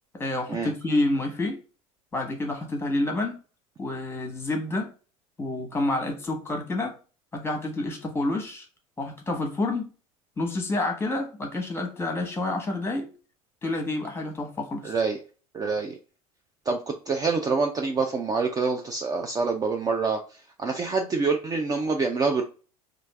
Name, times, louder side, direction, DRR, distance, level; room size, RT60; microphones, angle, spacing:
voice 1, 0.1-1.6 2.1-3.4 3.8-4.9 5.4-6.9 7.3-8.7 9.0-9.9 10.4-13.1 13.6-14.9, left 2 dB, 15° left, 4 dB, 1.1 m, -28 dB
voice 2, 14.8-15.2 15.5-16.0 16.7-20.2 20.6-22.4, right 4 dB, 20° right, 4 dB, 0.4 m, -26 dB
3.1 x 2.5 x 3.1 m, 0.36 s
figure-of-eight pair, 75°, 19 cm